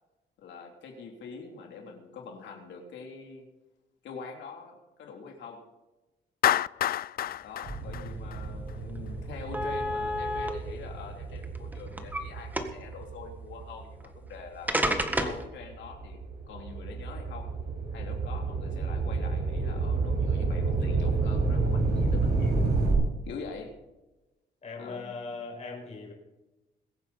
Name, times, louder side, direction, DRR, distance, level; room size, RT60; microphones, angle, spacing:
voice 1, 0.4-3.5 4.0-5.7 7.4-14.7 15.1-17.6 17.9-22.6 23.2-23.8 24.8-25.1, left 5 dB, 85° left, 2 dB, 3.2 m, -44 dB
Clapping, 6.4-8.7, left 12 dB, 55° left, 0.4 m, -28 dB
sound 1, 7.6-14.4 15.0-22.9, right 3 dB, 60° right, 5.8 m, -30 dB
sound 2, 8.4-8.5 8.9-9.0 9.5-10.5 11.4-12.2 12.5-12.9 14.0-14.1 14.7-15.4, equal, 10° right, 1.7 m, -29 dB
voice 2, 24.6-26.1, left 4 dB, 40° left, -2 dB, 5.2 m, -40 dB
22.5 x 9.0 x 4.2 m, 1.0 s
cardioid pair, 115°, 18 cm